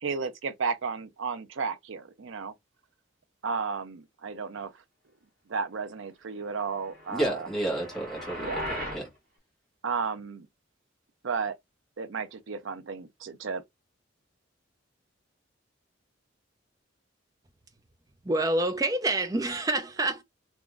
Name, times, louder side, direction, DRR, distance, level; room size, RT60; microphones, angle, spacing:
voice 1, 0.0-2.5 3.4-4.7 5.5-7.5 8.4-8.7 9.8-10.5 11.2-11.6 12.0-13.6, right 5 dB, 75° right, 0.5 m, -33 dB
sound 1, 6.8-9.1, equal, 45° right, 1.6 m, -37 dB
voice 2, 7.1-9.1, right 1 dB, ahead, 1.4 m, -31 dB
voice 3, 18.2-20.2, right 2 dB, 20° right, 0.4 m, -27 dB
3.6 x 3.0 x 2.4 m
head